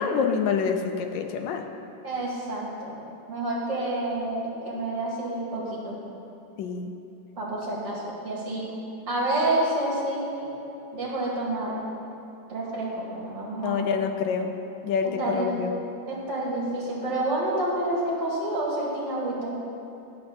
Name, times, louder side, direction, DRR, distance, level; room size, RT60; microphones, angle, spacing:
voice 1, 0.0-1.6 6.6-6.9 13.6-14.5 14.8-15.7, left 6 dB, 80° left, 5 dB, 1.3 m, -27 dB
voice 2, 2.0-2.9 3.3-6.0 7.4-8.8 9.1-10.5 10.9-11.9 12.5-13.9 15.2-15.5 16.1-19.6, right 1 dB, 40° right, -6 dB, 2.3 m, -29 dB
9.6 x 4.4 x 6.5 m, 2.9 s
omnidirectional pair, 2.1 m